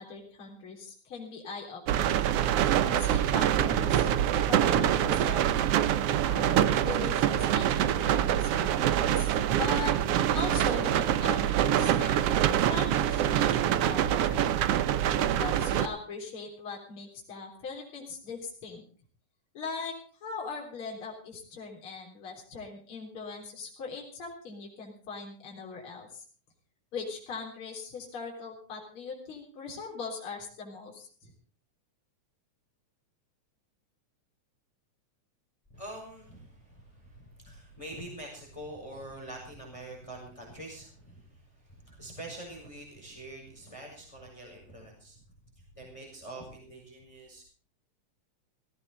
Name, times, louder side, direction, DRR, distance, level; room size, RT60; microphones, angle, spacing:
voice 1, 0.0-2.2 2.9-4.1 4.5-5.6 6.3-10.0 10.3-12.2 12.5-14.5 15.3-18.8 19.5-19.9 20.2-26.2 26.9-31.3, left 4 dB, 45° left, -1 dB, 4.5 m, -40 dB
sound 1, 1.9-15.9, right 10 dB, 65° right, 1.6 m, -25 dB
voice 2, 35.7-45.2 45.7-47.4, right 1 dB, 10° left, 1 dB, 5.6 m, -45 dB
17.5 x 16.5 x 3.8 m, 0.43 s
omnidirectional pair, 3.5 m